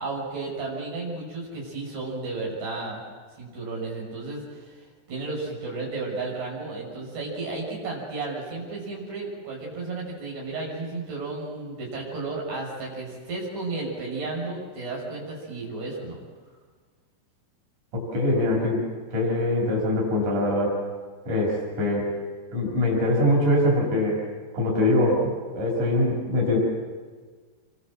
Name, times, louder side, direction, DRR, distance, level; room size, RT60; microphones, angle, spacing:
voice 1, 0.0-3.0 3.4-16.2, right 3 dB, 70° right, -3 dB, 8.6 m, -33 dB
voice 2, 17.9-18.8 19.1-20.8 21.3-22.1 22.5-24.2 24.5-26.6, left 1 dB, 45° right, -2 dB, 7.9 m, -23 dB
28.0 x 25.0 x 7.7 m, 1.5 s
omnidirectional pair, 4.9 m